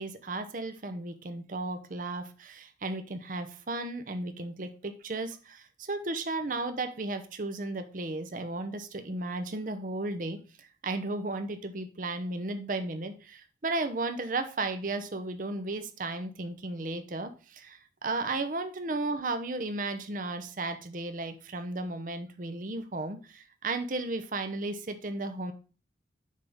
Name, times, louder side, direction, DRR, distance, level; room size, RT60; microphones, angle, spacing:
voice 1, 0.0-25.5, right 2 dB, 45° right, 8 dB, 0.7 m, -34 dB
7.4 x 3.6 x 5.3 m, 0.35 s
head